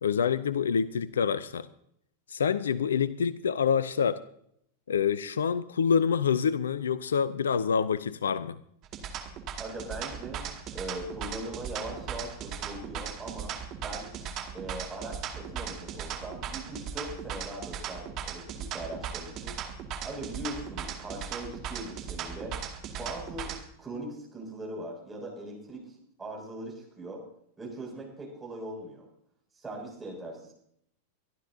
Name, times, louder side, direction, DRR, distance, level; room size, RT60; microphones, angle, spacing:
voice 1, 0.0-1.7 2.3-4.2 4.9-8.6, left 7 dB, 65° left, 18 dB, 0.5 m, -27 dB
sound 1, 8.8-23.6, right 8 dB, 35° right, 2.2 m, -38 dB
voice 2, 9.6-14.1 14.5-19.6 20.0-22.5 22.9-27.2 27.6-29.0 29.5-30.5, right 1 dB, 10° right, -2 dB, 6.7 m, -40 dB
24.0 x 12.0 x 2.7 m, 0.71 s
figure-of-eight pair, 90°, 0 cm